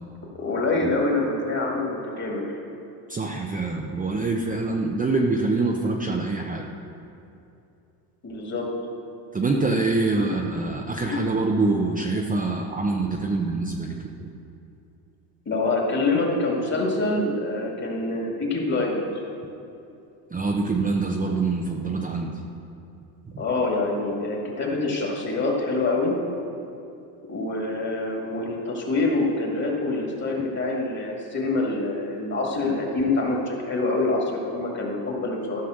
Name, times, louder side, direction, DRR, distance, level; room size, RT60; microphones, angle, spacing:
voice 1, 0.3-2.6 8.2-8.7 10.2-10.3 11.0-11.2 15.5-19.0 23.4-26.1 27.3-35.6, left 2 dB, 30° left, -2 dB, 2.4 m, -26 dB
voice 2, 3.1-6.7 9.3-14.0 14.2-14.3 20.3-22.3, right 3 dB, 15° right, 0 dB, 0.8 m, -25 dB
13.5 x 5.7 x 6.5 m, 2.7 s
supercardioid pair, 90°, 50 cm